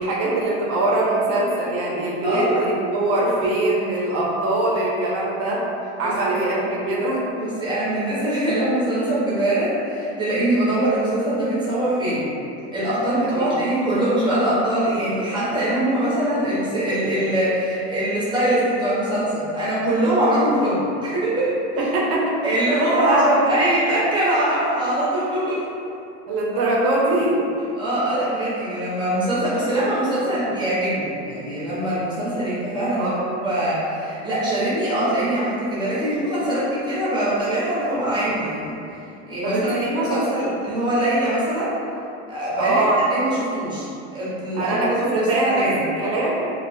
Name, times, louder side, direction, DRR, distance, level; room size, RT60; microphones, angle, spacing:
voice 1, 0.0-5.6 6.0-7.2 13.2-13.6 20.7-20.8 21.8-22.3 22.7-23.7 26.3-27.3 33.0-33.2 39.4-40.2 42.6-43.1 44.5-45.7 46.0-46.4, right 2 dB, 45° right, -4 dB, 0.6 m, -22 dB
voice 2, 2.2-2.6 6.0-6.4 7.3-12.2 12.7-21.9 22.4-25.6 27.7-38.7 39.3-39.8 40.0-41.7 42.3-42.9 43.1-45.8, right 1 dB, 15° right, -10 dB, 0.7 m, -23 dB
2.3 x 2.1 x 2.5 m, 2.6 s
supercardioid pair, 130°, 33 cm